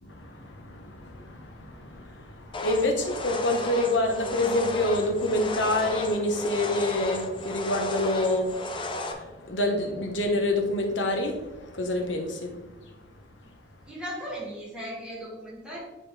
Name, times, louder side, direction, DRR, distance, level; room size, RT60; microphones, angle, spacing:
voice 1, 0.0-13.7, left 1 dB, 90° left, 1.2 m, -28 dB
sound 1, 2.5-9.1, left 2 dB, 25° left, 0.7 m, -34 dB
voice 2, 13.9-15.8, equal, 5° right, 2.2 m, -37 dB
9.6 x 4.3 x 3.4 m
head